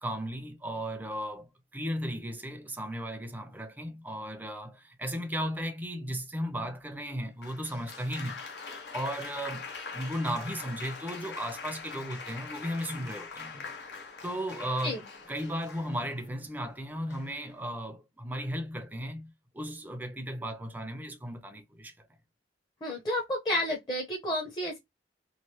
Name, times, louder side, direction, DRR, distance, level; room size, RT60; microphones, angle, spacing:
voice 1, 0.0-8.4 8.9-13.5 14.2-15.0 15.3-21.9, equal, 10° right, 0.6 m, -35 dB
Applause, 7.4-16.3 17.1-17.5, left 4 dB, 70° left, 0.9 m, -43 dB
voice 2, 22.8-24.8, left 1 dB, 25° left, 0.8 m, -31 dB
3.2 x 2.6 x 2.8 m
head